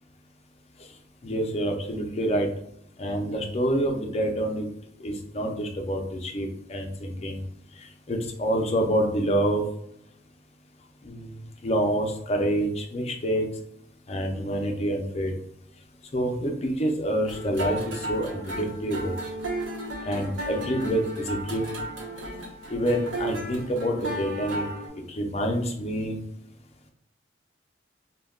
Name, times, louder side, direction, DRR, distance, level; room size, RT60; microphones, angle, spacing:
voice 1, 1.2-2.5 3.0-4.7 5.0-7.4 7.8-9.6 11.0-13.5 14.1-15.3 16.1-19.1 20.0-21.6 22.7-24.6 25.1-26.2, equal, 35° left, 3 dB, 0.4 m, -27 dB
sound 1, 17.2-24.9, right 1 dB, 90° right, 0.8 m, -34 dB
2.2 x 2.2 x 3.5 m, 0.75 s
head